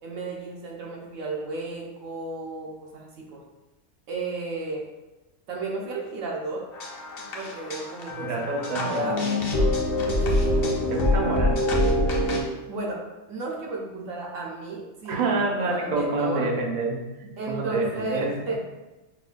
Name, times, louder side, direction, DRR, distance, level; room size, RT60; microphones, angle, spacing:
voice 1, 0.0-3.4 4.1-4.9 5.5-6.7 7.3-8.3 8.6-9.2 10.2-10.8 12.7-16.5 17.4-18.6, right 3 dB, 80° right, -2 dB, 1.1 m, -34 dB
sound 1, 6.7-12.4, left 1 dB, 55° left, 0.7 m, -25 dB
voice 2, 8.2-9.1 10.9-11.6 15.0-18.3, right 3 dB, 60° right, 0 dB, 0.4 m, -27 dB
4.7 x 2.2 x 2.4 m, 1.1 s
omnidirectional pair, 1.3 m